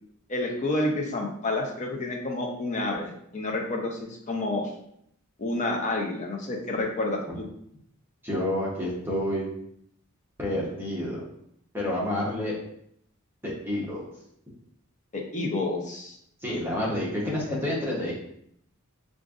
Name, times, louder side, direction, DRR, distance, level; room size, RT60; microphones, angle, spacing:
voice 1, 0.3-4.7 5.4-7.4 15.1-16.2, left 2 dB, 35° left, 1 dB, 0.6 m, -29 dB
voice 2, 8.2-9.5 10.4-11.2 11.7-12.5 13.4-14.1 16.4-18.1, left 1 dB, 10° right, -5 dB, 0.8 m, -29 dB
4.9 x 2.5 x 2.4 m, 0.72 s
head